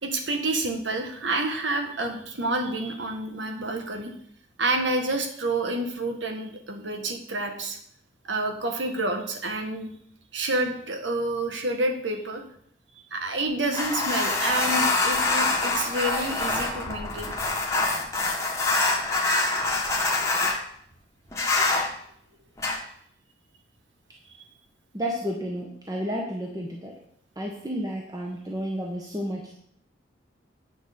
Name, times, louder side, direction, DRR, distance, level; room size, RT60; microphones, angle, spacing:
voice 1, 0.0-4.1 4.6-7.8 8.2-9.9 10.3-12.4 13.1-17.3, right 2 dB, 85° right, 4 dB, 1.5 m, -28 dB
sound 1, 13.7-20.6 21.3-21.9 22.6-22.8, left 3 dB, 15° left, 1.3 m, -25 dB
voice 2, 24.9-26.9 27.4-29.5, equal, 20° right, -1 dB, 1.1 m, -31 dB
9.2 x 6.3 x 5.2 m, 0.66 s
head